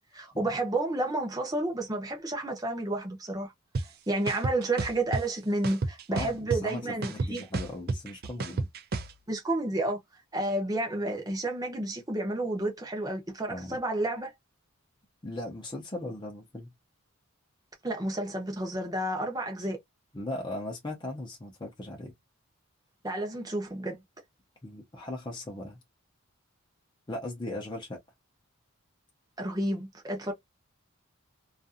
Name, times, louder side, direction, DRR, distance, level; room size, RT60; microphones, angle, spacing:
voice 1, 0.0-3.5 4.1-7.4 9.3-10.0 10.3-14.3 17.8-19.8 23.0-24.0 29.4-30.3, right 2 dB, 15° right, 0.7 m, -31 dB
sound 1, 3.7-3.8 4.3-5.2 5.6-6.7 7.0-9.1, right 3 dB, 45° right, 0.4 m, -30 dB
voice 2, 6.1-8.7 13.5-13.8 15.2-16.7 20.1-22.1 24.6-25.8 27.1-28.0, left 1 dB, 20° left, 0.6 m, -38 dB
2.5 x 2.4 x 2.5 m
head